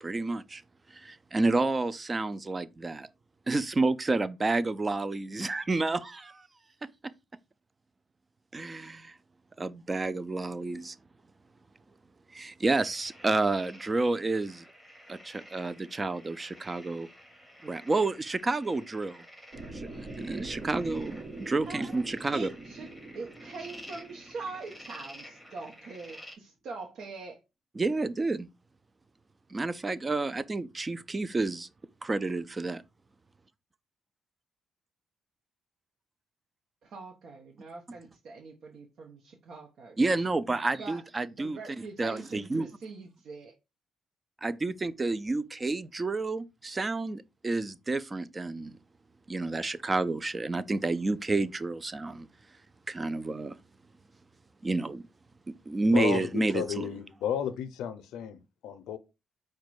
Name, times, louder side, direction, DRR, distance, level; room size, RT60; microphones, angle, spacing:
voice 1, 0.0-0.6 0.9-3.1 3.5-6.5 8.5-9.1 9.6-11.0 12.3-14.6 15.1-17.1 17.6-19.2 19.7-22.5 27.8-28.5 29.5-31.7 32.0-32.8 40.0-41.6 42.0-42.7 44.4-48.8 49.3-52.3 52.9-53.6 54.6-55.0 55.5-56.9, right 3 dB, 25° right, 0.4 m, -30 dB
sound 1, 12.7-26.3, equal, 5° right, 1.5 m, -51 dB
sound 2, 19.5-25.6, right 2 dB, 50° right, 1.3 m, -43 dB
voice 2, 22.3-22.9 23.1-27.4 36.8-40.0 40.8-41.0 41.3-43.5, right 4 dB, 65° right, 0.8 m, -43 dB
voice 3, 55.9-59.0, left 9 dB, 85° left, 0.4 m, -33 dB
4.9 x 2.2 x 4.6 m
cardioid pair, 90°, 0 cm